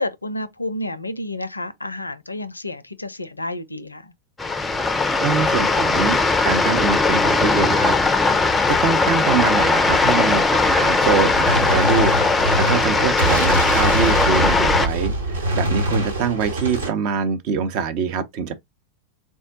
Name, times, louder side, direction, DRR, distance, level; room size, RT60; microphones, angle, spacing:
voice 1, 0.0-4.1, left 1 dB, 80° left, 0.4 m, -30 dB
sound 1, 4.4-14.9, left 3 dB, 10° left, 0.5 m, -19 dB
voice 2, 5.2-8.3 8.7-18.5, right 6 dB, 45° right, 0.7 m, -24 dB
Gunshot gunfire, 11.0-16.9, right 1 dB, 70° right, 1.1 m, -24 dB
3.6 x 2.1 x 3.8 m
figure-of-eight pair, 90°, 0 cm